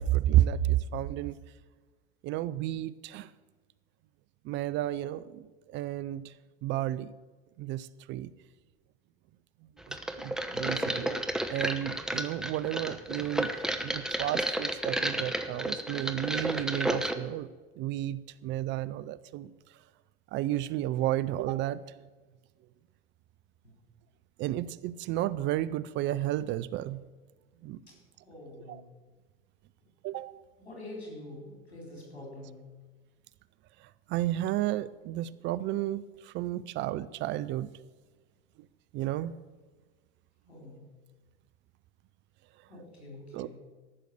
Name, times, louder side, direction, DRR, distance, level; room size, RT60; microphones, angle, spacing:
voice 1, 0.0-1.4 2.2-3.3 4.5-6.3 6.6-7.1 7.6-8.3 9.9-10.0 10.2-11.2 11.5-13.5 13.8-17.5 17.8-19.5 20.3-21.8 24.4-27.0 27.6-27.8 28.7-28.8 30.0-30.3 34.1-37.7 38.9-39.3 43.3-43.5, right 13 dB, 40° right, 16 dB, 0.4 m, -31 dB
sound 1, 9.9-17.1, right 1 dB, ahead, 0.9 m, -32 dB
voice 2, 10.7-11.1 23.6-23.8 28.2-28.9 30.6-32.6 40.4-40.8 42.7-43.5, left 1 dB, 85° left, -1 dB, 4.3 m, -45 dB
14.0 x 6.4 x 6.7 m, 1.3 s
hypercardioid pair, 80°, 31 cm